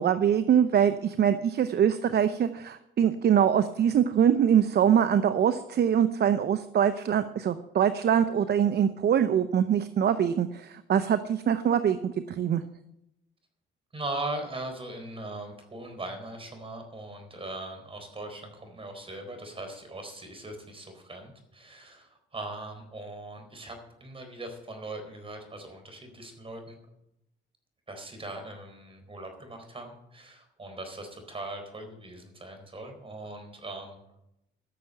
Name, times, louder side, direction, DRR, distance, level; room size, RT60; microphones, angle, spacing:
voice 1, 0.0-12.6, right 9 dB, 55° right, 11 dB, 0.7 m, -23 dB
voice 2, 13.9-26.8 27.9-34.0, right 2 dB, 25° right, 4 dB, 4.2 m, -40 dB
13.5 x 6.9 x 8.8 m, 0.84 s
cardioid pair, 90°, 20 cm